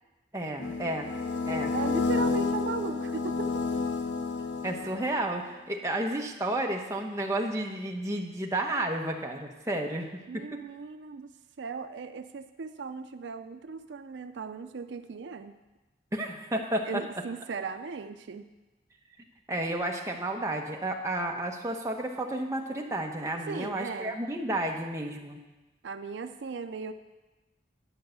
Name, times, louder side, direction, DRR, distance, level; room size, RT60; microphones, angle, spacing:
voice 1, 0.3-1.1 1.5-1.7 4.6-10.4 16.1-16.9 19.5-25.4, right 1 dB, 15° right, 1 dB, 1.0 m, -32 dB
sound 1, 0.6-5.2, left 4 dB, 85° left, 0.7 m, -30 dB
voice 2, 1.7-3.8 10.3-15.5 16.8-18.5 23.5-24.2 25.8-26.9, right 4 dB, 75° right, 9 dB, 0.5 m, -37 dB
11.0 x 5.5 x 8.0 m, 1.1 s
head